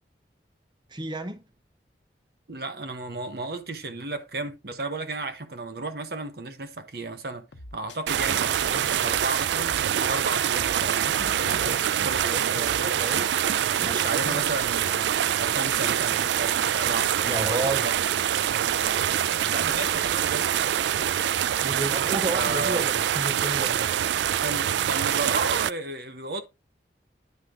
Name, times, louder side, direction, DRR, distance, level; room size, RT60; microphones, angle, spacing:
voice 1, 0.9-1.4 13.8-14.4 17.2-17.9 21.6-23.9, right 2 dB, 25° right, 0.7 m, -31 dB
voice 2, 2.5-7.4 7.7-13.3 13.8-18.0 19.5-20.5 22.3-22.8 24.4-26.4, right 3 dB, 55° right, 1.0 m, -34 dB
sound 1, 7.5-9.9 10.1-12.9 13.1-13.5, left 2 dB, 85° left, 1.0 m, -44 dB
sound 2, 8.1-25.7, right 10 dB, 75° right, 0.3 m, -25 dB
9.7 x 5.1 x 3.7 m
head